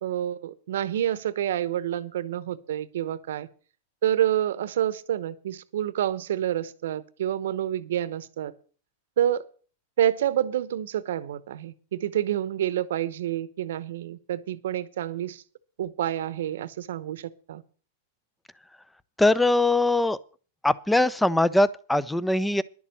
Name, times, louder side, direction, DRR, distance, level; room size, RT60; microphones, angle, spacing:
voice 1, 0.0-3.5 4.0-8.5 9.2-9.4 10.0-15.4 15.8-17.6, right 11 dB, 75° right, 16 dB, 0.9 m, -28 dB
voice 2, 19.2-20.2 20.6-22.6, left 2 dB, 5° left, 19 dB, 0.6 m, -21 dB
11.0 x 7.1 x 7.5 m, 0.40 s
hypercardioid pair, 125°, 0 cm